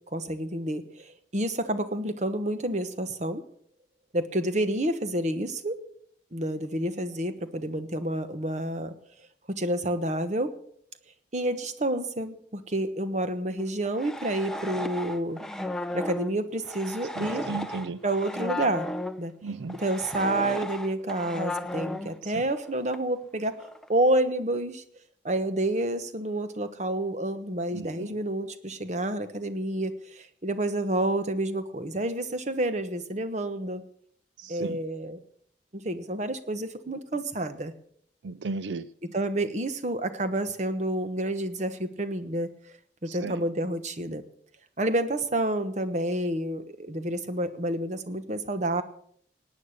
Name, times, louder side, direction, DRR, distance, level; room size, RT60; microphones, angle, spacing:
voice 1, 0.1-3.4 4.1-5.8 6.3-8.9 9.5-10.6 11.3-15.4 15.9-17.4 18.0-18.9 19.2-19.3 19.7-24.8 25.2-33.8 34.5-35.2 35.7-37.7 39.1-42.5 43.0-44.2 44.8-48.8, right 1 dB, 40° right, 10 dB, 1.2 m, -29 dB
sound 1, 13.6-19.2 19.7-22.7 22.9-23.0 23.6-23.9, left 1 dB, 5° left, 0.6 m, -35 dB
voice 2, 17.2-18.0 19.4-19.7 27.7-28.1 34.4-34.8 38.2-38.9 43.2-43.3, right 4 dB, 85° right, 16 dB, 0.5 m, -34 dB
18.0 x 9.4 x 6.6 m, 0.65 s
head